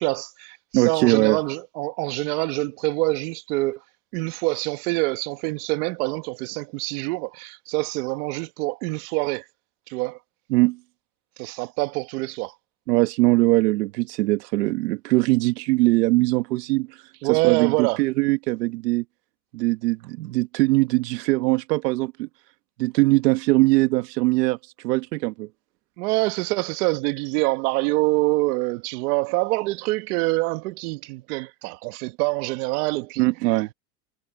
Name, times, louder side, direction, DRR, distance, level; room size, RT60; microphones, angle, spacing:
voice 1, 0.0-3.8 4.1-9.4 9.9-10.2 11.4-12.5 17.2-18.0 26.0-33.3, right 23 dB, 65° right, 1.6 m, -25 dB
voice 2, 0.7-1.4 10.5-10.8 12.9-19.0 19.5-22.3 22.8-25.5 33.2-33.7, right 21 dB, 80° right, 1.3 m, -21 dB
supercardioid pair, 150°, 48 cm